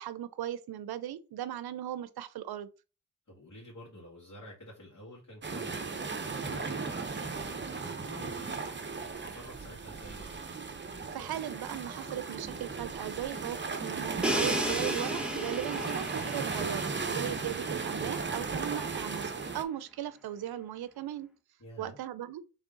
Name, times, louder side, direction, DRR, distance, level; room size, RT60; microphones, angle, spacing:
voice 1, 0.0-2.7 11.1-21.3 21.8-22.4, right 11 dB, 85° right, 0.5 m, -38 dB
voice 2, 3.3-8.8 9.2-10.4 15.6-15.9 21.6-22.0, equal, 50° left, 2.1 m, -49 dB
sound 1, 5.4-19.6, right 4 dB, 30° right, 0.8 m, -36 dB
Crash cymbal, 14.2-18.0, equal, 5° right, 0.9 m, -34 dB
3.6 x 3.5 x 3.7 m
cardioid pair, 60°, 36 cm